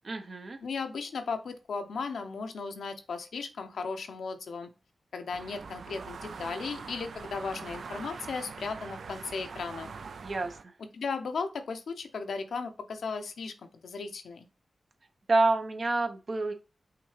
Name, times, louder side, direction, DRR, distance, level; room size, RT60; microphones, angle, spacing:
voice 1, 0.0-0.6 10.2-10.6 15.3-16.5, right 2 dB, 55° right, 6 dB, 0.7 m, -28 dB
voice 2, 0.6-4.7 5.1-9.9 10.9-13.5 13.8-14.5, left 4 dB, 80° left, 7 dB, 0.6 m, -36 dB
sound 1, 5.3-10.6, right 5 dB, 80° right, 0.3 m, -43 dB
5.8 x 2.8 x 3.2 m, 0.32 s
cardioid pair, 45°, 0 cm